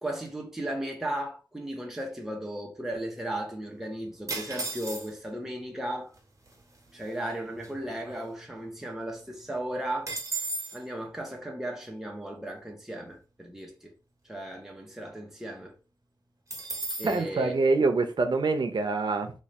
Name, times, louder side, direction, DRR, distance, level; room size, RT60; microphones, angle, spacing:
voice 1, 0.0-6.1 6.9-10.2 10.7-13.9 14.2-15.7 16.9-17.5, right 1 dB, 5° right, 0.8 m, -36 dB
sound 1, 4.3-5.4 6.2-6.3 6.5-6.8 7.2-8.7 9.0-9.1 9.4-10.8 16.5-17.2, right 2 dB, 40° right, 1.1 m, -35 dB
voice 2, 17.0-19.3, right 3 dB, 70° right, 0.6 m, -25 dB
3.1 x 2.4 x 4.0 m
wide cardioid pair, 100°, 8 cm